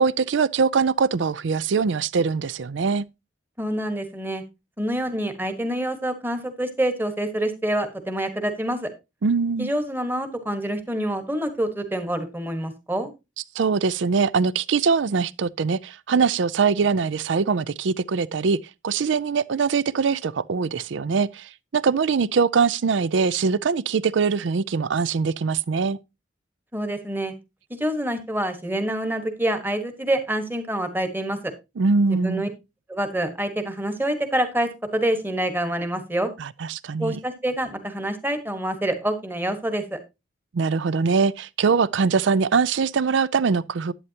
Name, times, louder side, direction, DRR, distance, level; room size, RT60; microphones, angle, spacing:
voice 1, 0.0-3.0 9.2-9.7 13.5-26.0 31.8-32.4 36.4-37.2 40.5-43.9, right 5 dB, 70° right, 0.5 m, -22 dB
voice 2, 3.6-4.4 4.8-8.9 9.6-13.1 26.7-27.3 27.7-31.5 32.2-32.5 32.9-36.3 37.0-40.0, right 1 dB, 10° right, 1.4 m, -26 dB
11.0 x 9.4 x 2.8 m
head